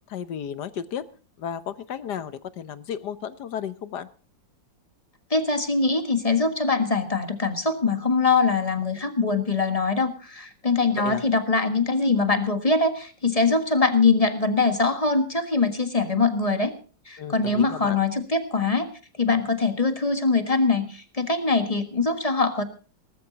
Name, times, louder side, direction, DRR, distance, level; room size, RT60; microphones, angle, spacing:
voice 1, 0.1-1.0 1.4-4.1 10.9-11.2 17.2-18.0, left 8 dB, 65° left, 14 dB, 1.4 m, -33 dB
voice 2, 5.3-16.7 17.1-18.9 19.2-22.6, left 3 dB, 20° left, 9 dB, 1.4 m, -23 dB
19.0 x 13.5 x 4.0 m, 0.36 s
omnidirectional pair, 2.1 m